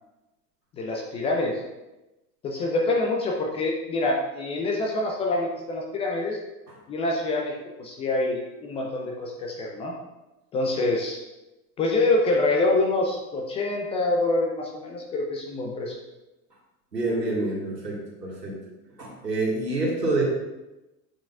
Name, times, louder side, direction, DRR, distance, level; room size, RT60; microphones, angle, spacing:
voice 1, 0.8-1.6 2.4-6.4 6.9-9.9 10.5-11.2 11.8-16.0, left 2 dB, 15° left, -1 dB, 0.3 m, -26 dB
voice 2, 16.9-18.5 19.0-20.2, right 2 dB, 85° right, -3 dB, 1.7 m, -27 dB
8.3 x 5.1 x 2.3 m, 1.0 s
figure-of-eight pair, 80°, 48 cm